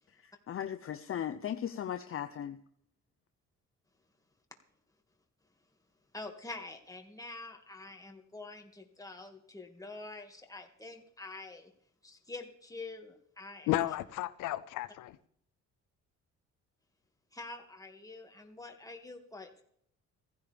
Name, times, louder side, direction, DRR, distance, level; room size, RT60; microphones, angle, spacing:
voice 1, 0.2-2.6, left 9 dB, 45° left, 8 dB, 0.7 m, -37 dB
voice 2, 6.1-11.7 12.0-13.7 17.3-19.6, left 2 dB, 10° left, 3 dB, 2.2 m, -46 dB
voice 3, 13.7-15.2, left 15 dB, 85° left, 14 dB, 0.6 m, -33 dB
15.5 x 15.5 x 3.5 m, 0.68 s
cardioid pair, 90°, 30 cm